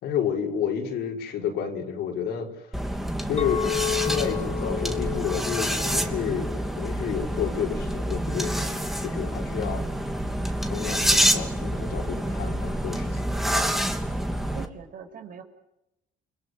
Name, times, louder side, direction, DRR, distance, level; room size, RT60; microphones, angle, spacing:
voice 1, 0.0-2.7 3.2-3.7 4.0-6.5 6.8-9.8 10.7-13.2, left 8 dB, 75° left, 1 dB, 5.7 m, -30 dB
sound 1, 2.7-14.7, equal, ahead, 2.9 m, -27 dB
Chink clink, 3.4-7.6, left 11 dB, 35° left, 1.5 m, -32 dB
voice 2, 14.4-15.4, right 7 dB, 55° right, 5 dB, 6.2 m, -42 dB
29.5 x 21.0 x 8.1 m, 0.87 s
cardioid pair, 110°, 17 cm